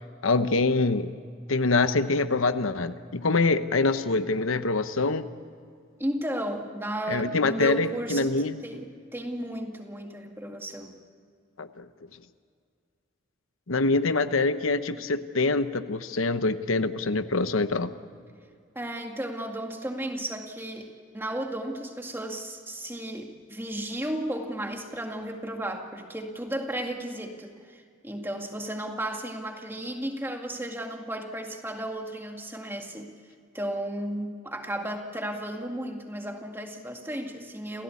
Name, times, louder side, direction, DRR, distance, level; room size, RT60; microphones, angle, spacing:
voice 1, 0.2-1.1 1.5-5.3 7.1-8.6 11.6-11.9 13.7-17.9, left 3 dB, 80° left, 10 dB, 1.0 m, -25 dB
voice 2, 6.0-8.4 8.6-11.0 18.8-33.1 33.5-37.8, right 1 dB, 10° right, 3 dB, 2.0 m, -34 dB
27.5 x 16.5 x 8.5 m, 2.2 s
head